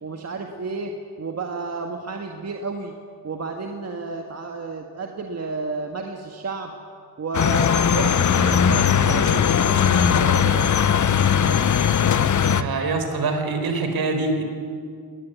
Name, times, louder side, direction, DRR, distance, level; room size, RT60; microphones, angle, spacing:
voice 1, 0.0-3.0 3.2-6.7 7.2-10.6, right 3 dB, 40° right, 3 dB, 1.8 m, -31 dB
sound 1, 7.3-12.6, left 8 dB, 45° left, 1.0 m, -19 dB
voice 2, 12.4-14.4, right 3 dB, 60° right, 6 dB, 4.5 m, -25 dB
19.5 x 19.5 x 9.5 m, 2.2 s
cardioid pair, 105°, 40 cm